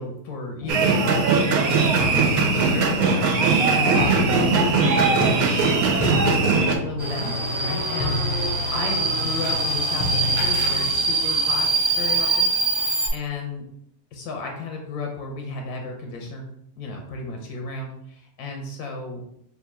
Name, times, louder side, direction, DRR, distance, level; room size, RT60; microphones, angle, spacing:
voice 1, 0.0-11.7 12.0-12.5 13.1-13.6 14.1-16.5 16.8-19.3, left 3 dB, 90° left, 2 dB, 1.3 m, -33 dB
sound 1, 0.6-1.5 2.0-3.7 4.0-7.7 8.0-9.7 10.0-10.9, left 2 dB, 25° left, 0.6 m, -31 dB
sound 2, 0.7-6.7, right 4 dB, 80° right, 1.1 m, -20 dB
Subway metro underground, 7.0-13.1, right 3 dB, 30° right, 0.5 m, -24 dB
3.5 x 2.3 x 4.4 m, 0.71 s
omnidirectional pair, 1.6 m